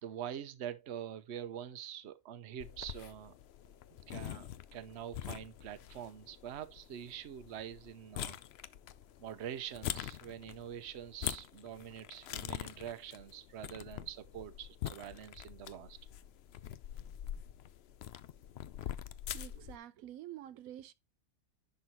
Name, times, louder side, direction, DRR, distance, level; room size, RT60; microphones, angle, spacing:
voice 1, 0.0-3.3 3.9-8.4 9.2-16.0, right 10 dB, 60° right, 1.0 m, -45 dB
sound 1, 2.6-19.8, left 11 dB, 60° left, 0.7 m, -45 dB
voice 2, 19.3-20.9, right 12 dB, 85° right, 1.0 m, -48 dB
10.5 x 3.9 x 4.2 m
omnidirectional pair, 1.4 m